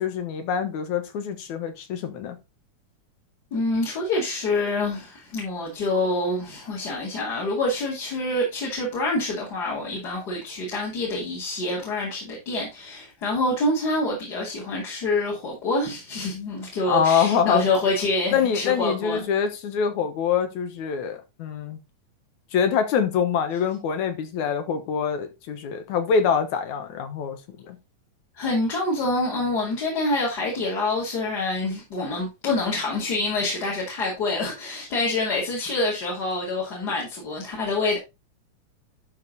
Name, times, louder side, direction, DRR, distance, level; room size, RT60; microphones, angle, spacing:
voice 1, 0.0-2.4 16.9-17.6 18.3-21.8 22.5-27.8, left 7 dB, 75° left, 2.6 m, -25 dB
voice 2, 3.5-19.2 28.3-38.0, left 2 dB, 35° left, 2.8 m, -26 dB
11.5 x 4.6 x 3.9 m
omnidirectional pair, 3.6 m